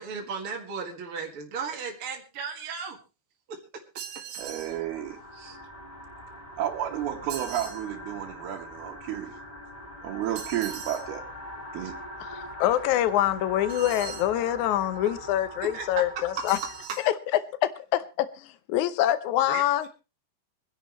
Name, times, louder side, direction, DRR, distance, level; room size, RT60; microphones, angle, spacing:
voice 1, 0.0-3.0 3.5-3.6 5.4-5.6 15.6-16.1 19.5-19.6, right 5 dB, 45° right, 2.2 m, -35 dB
sound 1, 4.0-4.8 7.3-7.8 10.4-11.1 13.7-14.3 16.4-17.1, right 8 dB, 60° right, 3.3 m, -40 dB
sound 2, 4.3-16.9, equal, 20° left, 1.1 m, -42 dB
voice 2, 4.4-5.2 6.6-9.3 10.0-11.2 11.7-11.9, right 11 dB, 90° right, 3.2 m, -32 dB
voice 3, 12.2-16.6 17.0-17.1 17.6-19.9, left 13 dB, 75° left, 1.8 m, -25 dB
26.0 x 10.5 x 3.1 m
omnidirectional pair, 4.3 m